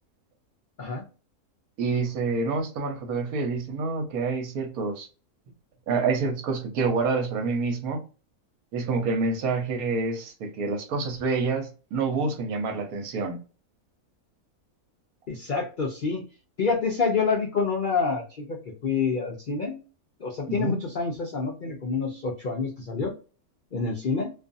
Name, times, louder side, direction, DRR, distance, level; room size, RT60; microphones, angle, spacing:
voice 1, 1.8-5.1 5.9-8.0 8.7-13.4 20.5-20.8, right 4 dB, 75° right, 1.2 m, -27 dB
voice 2, 15.3-16.3 16.6-19.8 20.2-23.1 23.7-24.3, left 5 dB, 80° left, 0.4 m, -27 dB
2.6 x 2.4 x 2.5 m
omnidirectional pair, 1.6 m